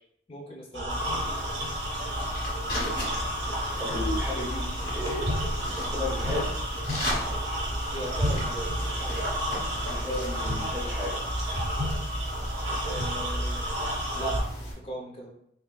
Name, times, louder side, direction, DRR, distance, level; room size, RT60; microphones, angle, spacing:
voice 1, 0.3-1.3 7.9-8.7 9.0-9.2 12.9-13.6 14.1-15.3, right 1 dB, 30° left, -2 dB, 0.6 m, -38 dB
sound 1, 0.7-14.4, equal, 65° right, 1.1 m, -31 dB
sound 2, 0.9-14.7, equal, 50° left, 1.4 m, -36 dB
voice 2, 3.8-4.7 4.9-5.3 5.8-6.5 9.5-11.2, left 2 dB, 10° right, -8 dB, 0.7 m, -34 dB
3.9 x 3.5 x 2.3 m, 0.71 s
head